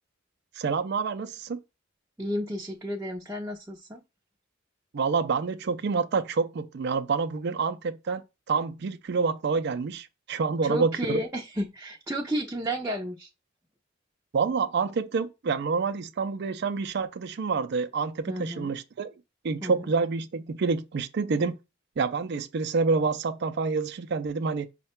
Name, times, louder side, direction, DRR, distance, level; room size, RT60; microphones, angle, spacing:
voice 1, 0.6-1.6 4.9-11.2 14.3-19.1 19.4-21.5 22.0-24.7, right 4 dB, 60° right, 0.4 m, -28 dB
voice 2, 2.2-4.0 10.6-13.3 18.3-18.7 19.6-19.9, equal, 15° right, 0.6 m, -32 dB
5.6 x 2.2 x 4.3 m
head